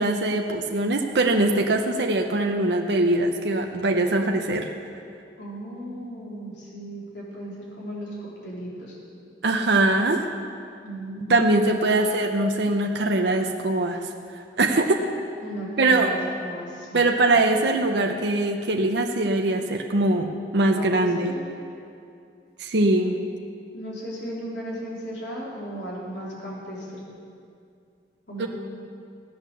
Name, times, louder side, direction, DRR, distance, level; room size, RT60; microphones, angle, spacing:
voice 1, 0.0-4.7 9.4-10.3 11.3-14.0 14.6-15.1 15.8-16.1 16.9-21.3 22.6-23.2 28.4-28.5, right 2 dB, 70° right, 3 dB, 0.8 m, -22 dB
voice 2, 5.4-9.0 10.8-11.8 15.4-17.1 20.8-21.4 23.7-27.0 28.3-28.5, right 1 dB, 70° left, -5 dB, 3.7 m, -35 dB
16.0 x 8.5 x 6.8 m, 2.4 s
head